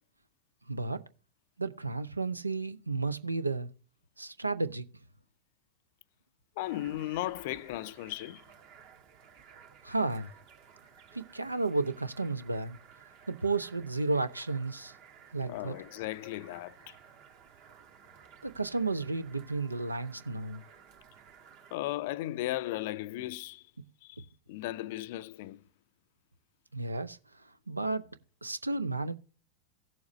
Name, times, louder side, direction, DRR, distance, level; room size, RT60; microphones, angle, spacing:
voice 1, 0.7-1.0 1.6-3.7 4.2-4.9 9.8-10.3 11.1-12.8 13.3-14.9 15.3-15.7 18.4-20.6 26.7-28.1 28.4-29.2, right 3 dB, 80° right, 0.6 m, -32 dB
voice 2, 6.6-8.4 15.4-17.0 21.7-23.6 24.0-24.2 24.5-25.6, left 16 dB, 50° left, 0.4 m, -36 dB
sound 1, 6.6-21.8, right 7 dB, 45° right, 1.6 m, -56 dB
16.5 x 7.1 x 3.0 m
figure-of-eight pair, 90°, 0 cm